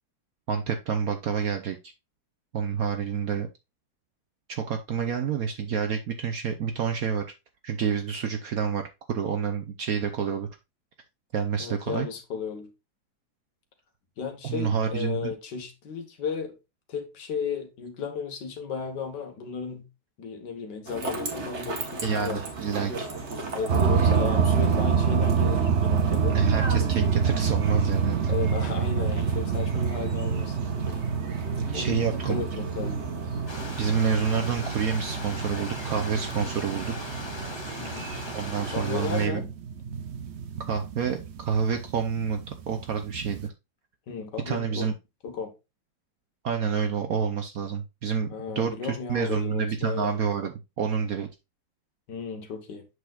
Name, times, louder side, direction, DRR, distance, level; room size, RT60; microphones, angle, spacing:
voice 1, 0.5-1.8 2.5-3.5 4.5-7.2 7.6-10.5 11.3-12.1 14.4-15.3 22.0-23.1 24.0-24.1 26.3-28.3 31.7-32.4 33.8-36.9 38.3-39.4 40.7-42.4 42.7-43.5 44.5-44.9 46.4-51.3, right 6 dB, 65° right, 1.0 m, -28 dB
voice 2, 11.6-12.7 14.2-16.5 16.9-19.9 20.2-22.5 23.5-26.4 28.3-30.6 31.7-33.0 37.8-38.2 38.7-39.5 44.1-44.9 45.2-45.5 48.3-50.2 52.1-52.9, left 6 dB, 60° left, 1.8 m, -34 dB
sound 1, 20.9-39.3, right 3 dB, 40° right, 1.3 m, -38 dB
sound 2, 23.7-43.5, right 6 dB, 80° right, 0.6 m, -27 dB
Stream, 33.5-39.3, left 2 dB, 15° left, 1.1 m, -39 dB
8.0 x 6.2 x 2.3 m
omnidirectional pair, 2.1 m